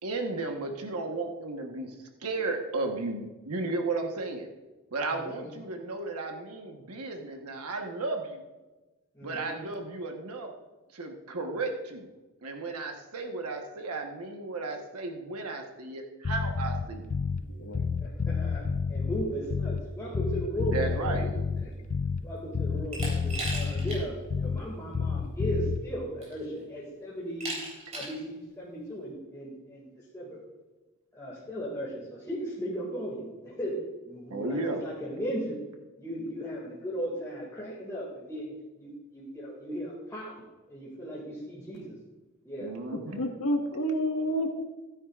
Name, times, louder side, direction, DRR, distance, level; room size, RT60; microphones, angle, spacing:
voice 1, 0.0-2.0 2.2-4.5 4.9-8.4 9.2-10.5 10.9-12.1 12.4-17.0 20.7-21.3 34.3-34.8 42.6-43.2, right 3 dB, 85° right, 3 dB, 1.2 m, -34 dB
voice 2, 5.1-5.5 9.1-9.6 18.0-18.6 18.9-21.3 21.6-21.7 22.2-27.5 27.9-30.4 31.1-33.8 34.0-35.6 36.0-40.3 40.7-42.0 42.4-42.7 43.1-43.2, right 1 dB, 15° left, -6 dB, 2.1 m, -37 dB
Bass guitar, 16.2-17.5 17.7-19.9 20.1-22.3 22.5-24.7 24.9-25.8, left 5 dB, 35° left, 0.3 m, -30 dB
voice 3, 17.5-17.8 42.9-44.6, equal, 75° left, 3 dB, 1.5 m, -29 dB
Glass, 22.9-24.0 24.4-24.5 25.6-25.7 26.2-26.6 27.4-28.2, right 2 dB, 30° right, 3.8 m, -37 dB
15.5 x 9.6 x 2.4 m, 1.2 s
head